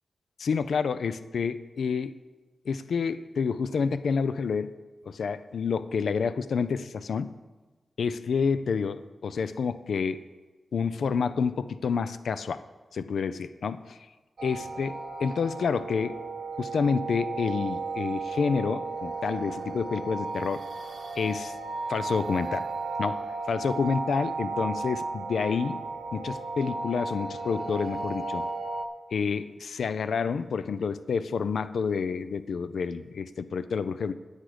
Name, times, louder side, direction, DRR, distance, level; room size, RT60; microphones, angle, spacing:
voice 1, 0.4-2.1 2.7-4.7 5.0-7.3 8.0-10.2 10.7-12.6 12.9-14.0 14.4-16.2 16.6-20.6 21.2-21.6 21.9-22.6 23.0-25.8 26.1-28.4 29.1-34.1, left 5 dB, 85° left, 13 dB, 0.4 m, -29 dB
sound 1, 14.4-28.9, right 3 dB, 70° right, 0.9 m, -34 dB
9.9 x 8.2 x 5.0 m, 1.2 s
cardioid pair, 60°, 0 cm